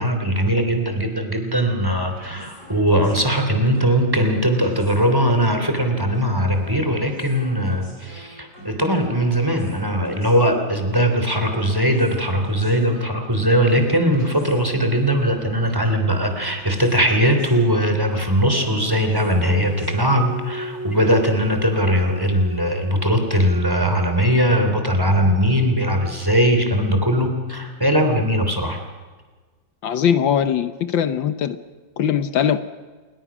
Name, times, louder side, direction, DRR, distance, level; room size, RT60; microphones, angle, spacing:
voice 1, 0.0-28.8, equal, 10° right, 5 dB, 3.2 m, -20 dB
sound 1, 1.9-19.9, left 1 dB, 55° left, 6.8 m, -42 dB
sound 2, 18.9-24.2, right 1 dB, 80° right, 3.8 m, -35 dB
voice 2, 29.8-31.6 32.0-32.6, left 8 dB, 75° left, 11 dB, 1.7 m, -20 dB
28.0 x 22.0 x 6.2 m, 1.4 s
omnidirectional pair, 2.1 m